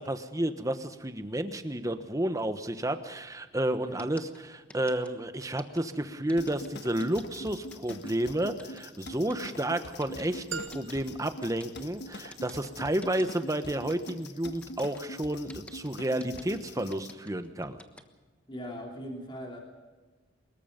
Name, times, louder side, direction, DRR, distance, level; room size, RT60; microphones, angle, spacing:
voice 1, 0.0-17.8, right 1 dB, 15° right, 9 dB, 1.2 m, -31 dB
sound 1, 4.0-18.0, left 1 dB, 5° left, 1.2 m, -50 dB
sound 2, 6.4-17.1, left 1 dB, 60° left, 1.4 m, -44 dB
sound 3, 10.5-12.6, right 6 dB, 65° right, 1.3 m, -43 dB
voice 2, 18.5-19.6, equal, 25° left, 0 dB, 2.9 m, -40 dB
24.5 x 21.5 x 5.3 m, 1.3 s
head